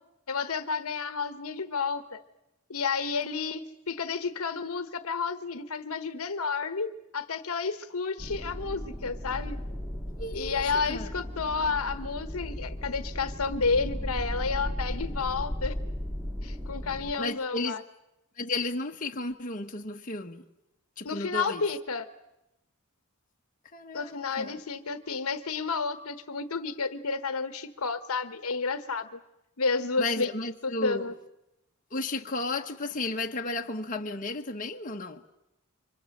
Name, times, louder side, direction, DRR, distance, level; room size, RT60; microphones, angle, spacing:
voice 1, 0.3-2.2 2.7-9.6 10.3-15.7 16.4-17.8 21.0-22.1 23.9-29.2 29.6-30.3 30.6-31.1, left 4 dB, 70° left, 1.1 m, -31 dB
sound 1, 8.2-17.1, left 1 dB, 5° right, 2.3 m, -36 dB
voice 2, 10.2-11.1 17.2-17.8 18.4-20.4 21.0-21.6 23.7-24.6 30.0-31.1 31.9-35.2, left 2 dB, 40° left, 1.3 m, -33 dB
29.5 x 24.5 x 6.6 m
head